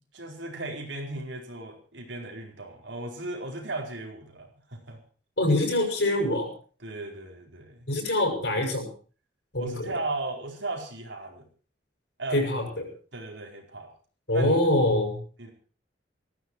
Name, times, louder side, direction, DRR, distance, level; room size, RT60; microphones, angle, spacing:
voice 1, 0.1-5.0 6.8-7.9 9.6-11.4 12.2-12.5 13.1-13.9 14.3-14.5 15.4-15.5, right 2 dB, 85° right, 1 dB, 4.7 m, -36 dB
voice 2, 5.4-6.5 7.9-8.9 9.5-9.9 12.3-12.9 14.3-15.2, left 1 dB, 70° left, 2 dB, 6.9 m, -24 dB
19.5 x 15.0 x 4.7 m, 0.41 s
head